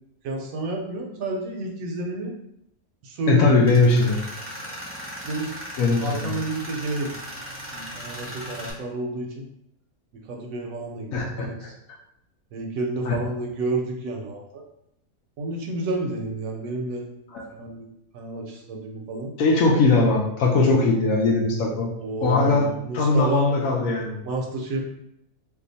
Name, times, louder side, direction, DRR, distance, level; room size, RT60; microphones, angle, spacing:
voice 1, 0.2-2.3 3.0-3.6 5.2-5.5 6.0-7.1 7.7-9.5 10.3-11.7 12.5-14.6 15.4-17.1 17.5-19.3 22.0-23.5 24.2-24.8, right 2 dB, 70° right, 1 dB, 0.9 m, -30 dB
voice 2, 3.3-4.2 5.8-6.3 11.1-11.5 13.1-13.2 17.3-17.4 19.4-21.9 22.2-24.2, left 3 dB, 70° left, 0 dB, 0.9 m, -20 dB
Tools, 3.6-8.7, equal, 20° right, 0.4 m, -37 dB
2.7 x 2.3 x 3.9 m, 0.80 s
omnidirectional pair, 1.6 m